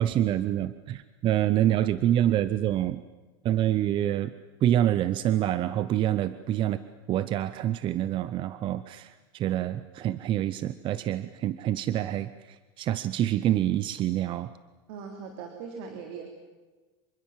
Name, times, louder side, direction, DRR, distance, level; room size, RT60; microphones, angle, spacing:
voice 1, 0.0-3.0 3.4-4.3 4.6-6.8 7.1-14.5, right 12 dB, 35° right, 14 dB, 0.8 m, -26 dB
voice 2, 14.9-16.3, right 6 dB, 65° right, 4 dB, 3.5 m, -40 dB
26.5 x 23.5 x 7.5 m, 1.3 s
supercardioid pair, 135°, 14 cm